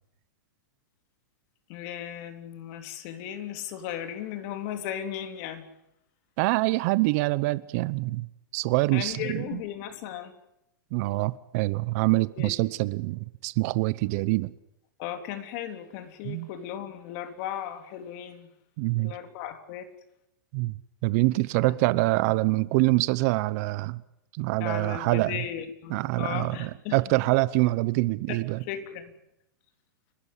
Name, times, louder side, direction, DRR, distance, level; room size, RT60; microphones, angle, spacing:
voice 1, 1.7-5.7 8.9-10.3 12.4-12.5 15.0-18.5 19.0-19.9 24.6-27.2 28.3-29.1, left 10 dB, 45° left, 3.5 m, -36 dB
voice 2, 6.4-8.3 8.5-9.6 10.9-14.5 16.2-16.5 18.8-19.2 20.5-24.0 24.3-25.4 25.9-28.6, right 21 dB, 45° right, 0.9 m, -25 dB
30.0 x 13.5 x 10.0 m
hypercardioid pair, 135°, 11 cm